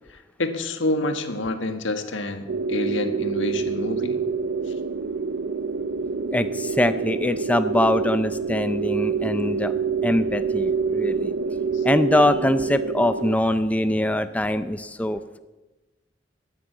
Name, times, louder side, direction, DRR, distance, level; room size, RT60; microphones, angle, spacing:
voice 1, 0.4-4.2 11.7-11.8, left 2 dB, 90° left, 7 dB, 1.6 m, -28 dB
sound 1, 2.5-13.4, right 5 dB, 85° right, 0.5 m, -26 dB
voice 2, 6.3-9.7 10.0-11.3 11.8-15.4, left 1 dB, 10° left, 11 dB, 0.4 m, -23 dB
13.0 x 9.8 x 8.3 m, 1.1 s
head